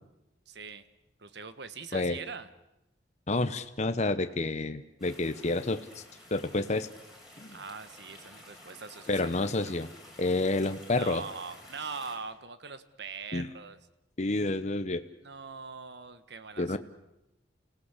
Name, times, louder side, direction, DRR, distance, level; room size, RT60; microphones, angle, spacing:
voice 1, 0.5-0.8 1.2-2.5 7.5-9.8 11.0-13.8 15.2-16.8, right 5 dB, 65° right, 12 dB, 1.4 m, -42 dB
voice 2, 3.3-6.0 6.3-6.9 7.4-7.6 9.1-9.9 10.2-11.2 13.3-13.5 14.2-15.0 16.6-16.8, left 2 dB, 40° left, 9 dB, 0.9 m, -29 dB
sound 1, 5.0-12.2, left 1 dB, ahead, 7.1 m, -52 dB
29.5 x 17.0 x 8.3 m, 0.89 s
head